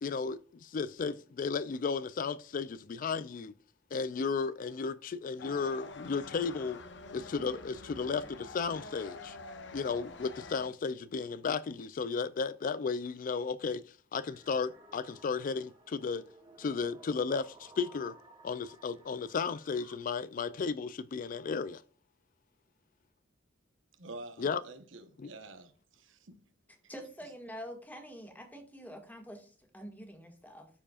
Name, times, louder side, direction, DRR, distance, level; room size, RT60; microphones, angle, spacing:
voice 1, 0.0-3.5 3.9-6.8 7.1-9.4 9.7-16.2 16.6-18.1 18.4-21.8 24.4-24.6 25.2-25.3, left 5 dB, 45° left, 0.3 m, -34 dB
sound 1, 5.4-10.7, left 3 dB, 60° left, 0.9 m, -47 dB
sound 2, 14.1-20.0, right 1 dB, 25° right, 1.6 m, -57 dB
voice 2, 24.0-26.4, right 2 dB, 75° right, 1.1 m, -48 dB
voice 3, 26.9-30.7, equal, 10° left, 1.8 m, -46 dB
13.5 x 4.9 x 2.4 m
head